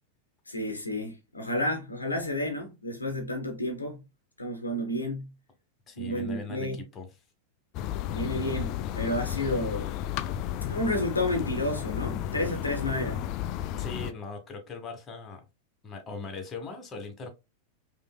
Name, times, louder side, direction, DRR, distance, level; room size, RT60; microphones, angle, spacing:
voice 1, 0.5-4.0 4.4-5.3 6.0-6.8 8.1-10.0 10.6-13.3, left 1 dB, 80° left, 0.8 m, -31 dB
voice 2, 5.9-7.1 13.8-15.4 15.8-17.3, left 3 dB, 25° left, 1.2 m, -40 dB
sound 1, 7.7-14.1, left 11 dB, 40° left, 0.3 m, -33 dB
5.1 x 2.7 x 2.2 m
figure-of-eight pair, 90°, 0 cm